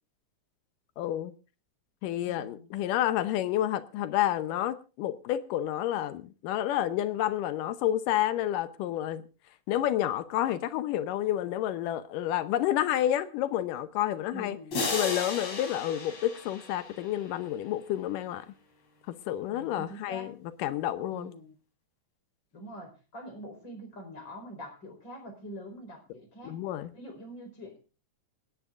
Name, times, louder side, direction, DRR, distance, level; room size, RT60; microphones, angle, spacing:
voice 1, 1.0-1.3 2.0-9.2 9.7-14.6 14.9-18.5 19.1-20.3 20.6-21.3 26.4-26.9, left 12 dB, 85° left, 2.4 m, -29 dB
voice 2, 2.2-2.7 14.3-14.8 19.5-20.3 21.1-21.5 22.5-26.6 26.9-27.8, equal, 35° left, 5.4 m, -45 dB
sound 1, 14.7-17.4, left 3 dB, 55° left, 5.0 m, -35 dB
28.0 x 10.0 x 2.5 m
omnidirectional pair, 3.7 m